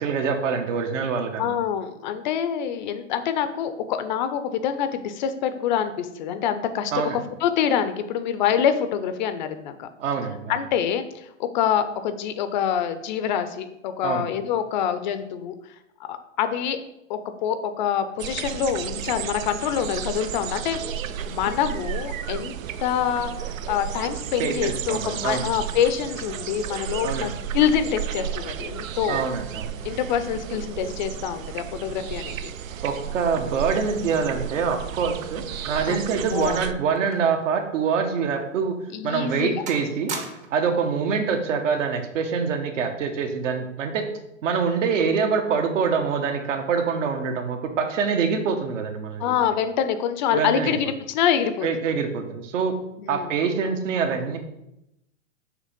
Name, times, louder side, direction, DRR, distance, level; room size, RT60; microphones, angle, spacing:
voice 1, 0.0-1.5 6.9-7.2 10.0-10.6 14.0-14.2 24.4-25.5 27.0-27.3 29.1-29.7 32.8-38.7 39.0-40.1 40.5-44.1 44.4-49.3 50.3-50.7 51.6-52.7 53.1-54.4, right 6 dB, 70° right, 5 dB, 1.2 m, -25 dB
voice 2, 1.4-7.1 7.4-9.9 10.5-15.5 16.1-16.8 17.1-20.8 21.3-22.5 22.8-29.2 29.8-32.4 35.9-36.6 38.9-39.6 49.2-51.7 53.0-53.3, left 8 dB, 40° left, 10 dB, 0.5 m, -26 dB
sound 1, 18.2-36.7, right 9 dB, 85° right, 0.6 m, -33 dB
sound 2, 35.5-37.5 37.8-37.9 38.6-38.7 39.1-39.4 39.7-40.7 41.7-42.0, right 4 dB, 20° right, 0.6 m, -39 dB
6.5 x 3.1 x 5.1 m, 0.84 s
hypercardioid pair, 130°, 39 cm